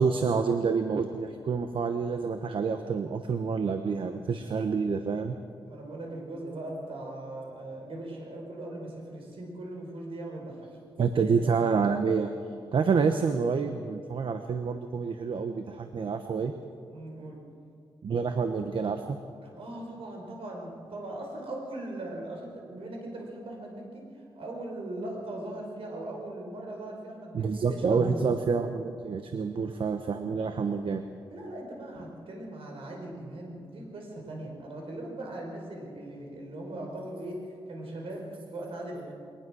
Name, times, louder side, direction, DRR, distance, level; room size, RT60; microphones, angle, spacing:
voice 1, 0.0-5.4 11.0-12.3 12.7-16.5 18.0-19.2 27.3-31.0, right 5 dB, 65° right, 7 dB, 1.0 m, -28 dB
voice 2, 5.6-10.7 11.1-11.4 16.9-17.4 19.4-28.2 31.3-39.1, right 1 dB, 80° right, 0 dB, 5.1 m, -39 dB
22.5 x 19.0 x 6.3 m, 2.3 s
wide cardioid pair, 130°, 9 cm